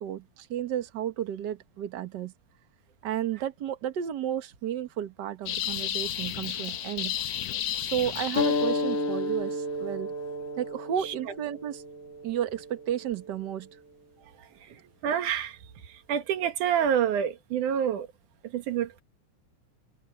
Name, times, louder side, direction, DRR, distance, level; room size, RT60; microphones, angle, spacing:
voice 1, 0.0-2.3 3.0-7.1 7.8-10.1 10.6-11.8 12.2-13.7, right 10 dB, 55° right, 1.2 m, -32 dB
sound 1, 5.5-9.1, left 11 dB, 65° left, 2.2 m, -33 dB
sound 2, 8.3-13.5, left 2 dB, 30° left, 1.9 m, -32 dB
voice 2, 14.4-14.7 15.0-15.6 15.8-18.1 18.4-19.0, right 9 dB, 90° right, 3.0 m, -28 dB
omnidirectional pair, 3.4 m